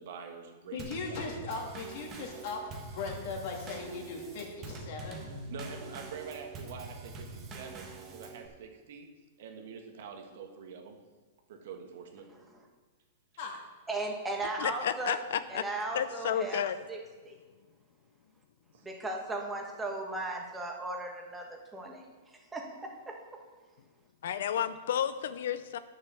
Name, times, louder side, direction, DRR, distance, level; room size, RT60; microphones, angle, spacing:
voice 1, 0.0-0.8 1.1-1.2 1.5-1.6 5.5-9.1 9.4-11.0 11.5-12.3 18.7-18.9, right 6 dB, 65° right, 3 dB, 1.7 m, -45 dB
voice 2, 0.7-2.6 2.9-5.3 13.4-13.5, left 4 dB, 55° left, 0 dB, 2.5 m, -38 dB
Drum kit / Snare drum / Bass drum, 0.8-8.5, right 3 dB, 25° right, 1.5 m, -44 dB
voice 3, 13.9-15.2 15.5-16.6 16.9-17.0 17.2-17.3 18.8-22.0 22.5-23.1, right 2 dB, 10° right, 1 dB, 1.5 m, -36 dB
voice 4, 14.6-15.6 15.9-16.8 24.2-25.8, left 9 dB, 75° left, 13 dB, 0.5 m, -31 dB
9.0 x 6.6 x 6.9 m, 1.3 s
hypercardioid pair, 145°, 0 cm